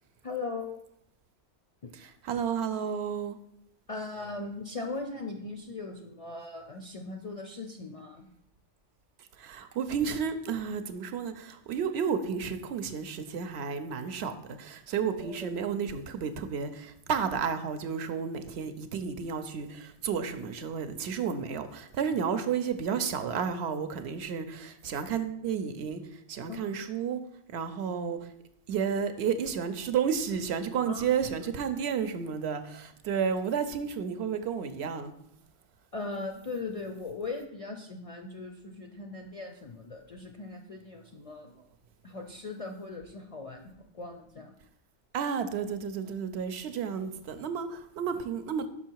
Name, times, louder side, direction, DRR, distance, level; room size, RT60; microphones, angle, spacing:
voice 1, 0.2-0.8 1.8-1.9 3.9-8.3 15.2-15.5 26.4-26.7 30.8-31.0 31.4-31.5 35.9-41.5 42.0-44.5, left 3 dB, 50° left, 0.4 m, -39 dB
voice 2, 1.9-3.4 9.4-27.2 27.5-28.3 28.7-35.1 41.5-41.6 45.1-48.7, right 7 dB, 70° right, 0.8 m, -32 dB
5.7 x 5.5 x 4.5 m
omnidirectional pair, 1.2 m